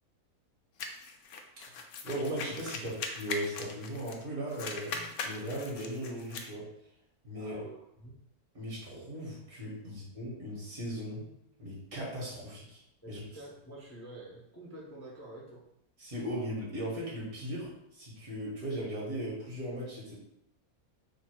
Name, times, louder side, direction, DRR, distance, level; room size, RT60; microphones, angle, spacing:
sound 1, 0.8-4.2 4.5-6.5, left 4 dB, 65° left, 0.8 m, -40 dB
voice 1, 2.0-6.7 7.2-7.6 8.5-11.3 11.6-12.8 13.1-13.2 16.0-20.2, equal, 70° right, -5 dB, 2.3 m, -38 dB
voice 2, 7.3-8.2 13.0-15.6, right 1 dB, 15° left, -4 dB, 0.6 m, -48 dB
4.0 x 2.7 x 4.6 m, 0.77 s
omnidirectional pair, 1.6 m